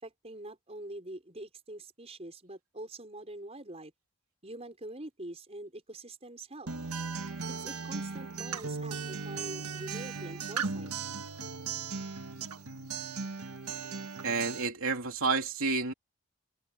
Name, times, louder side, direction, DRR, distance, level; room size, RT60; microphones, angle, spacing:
voice 1, 0.0-3.9 4.4-6.7 7.6-10.9, right 1 dB, 30° right, 5.5 m, -45 dB
Acoustic guitar, 6.7-14.7, right 5 dB, 90° right, 1.6 m, -37 dB
voice 2, 14.2-15.9, right 4 dB, 70° right, 3.2 m, -30 dB
head